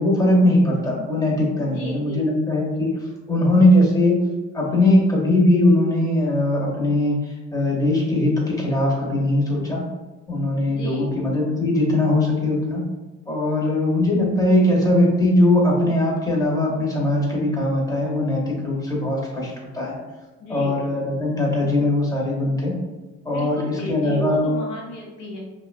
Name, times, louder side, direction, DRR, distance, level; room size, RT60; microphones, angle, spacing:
voice 1, 0.0-2.9 3.3-4.2 4.5-7.2 7.5-9.8 10.3-12.8 13.3-20.0 20.5-22.7 23.2-24.5, left 1 dB, 10° left, -3 dB, 0.7 m, -20 dB
voice 2, 1.6-2.3 10.7-11.2 20.4-20.8 23.3-25.4, left 1 dB, 85° left, -2 dB, 0.6 m, -34 dB
2.6 x 2.2 x 2.4 m, 1.2 s
cardioid pair, 90°, 30 cm